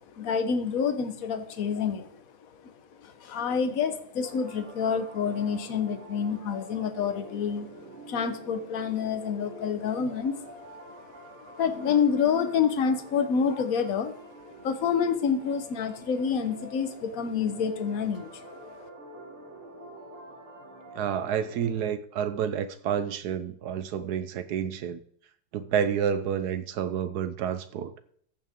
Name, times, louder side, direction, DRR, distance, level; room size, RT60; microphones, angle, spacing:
voice 1, 0.2-2.1 3.0-7.7 8.1-10.5 11.6-14.1 14.6-18.5, left 6 dB, 50° left, 9 dB, 1.2 m, -28 dB
sound 1, 4.2-21.9, right 1 dB, 90° right, 3.4 m, -47 dB
voice 2, 20.9-25.0 25.5-27.9, right 8 dB, 70° right, 11 dB, 1.0 m, -29 dB
14.5 x 8.7 x 3.6 m, 0.63 s
omnidirectional pair, 2.3 m